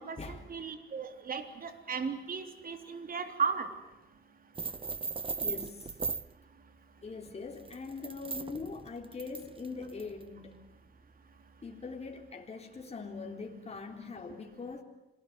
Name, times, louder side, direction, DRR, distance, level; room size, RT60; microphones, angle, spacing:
voice 1, 0.0-3.7, right 5 dB, 45° right, 8 dB, 3.6 m, -35 dB
sound 1, 4.5-6.3 7.5-10.2, right 4 dB, 25° right, 0.9 m, -38 dB
voice 2, 5.4-6.0 7.0-10.7 11.6-14.8, left 4 dB, 30° left, 2 dB, 3.8 m, -42 dB
27.5 x 19.5 x 9.6 m, 0.99 s
cardioid pair, 90°, 20 cm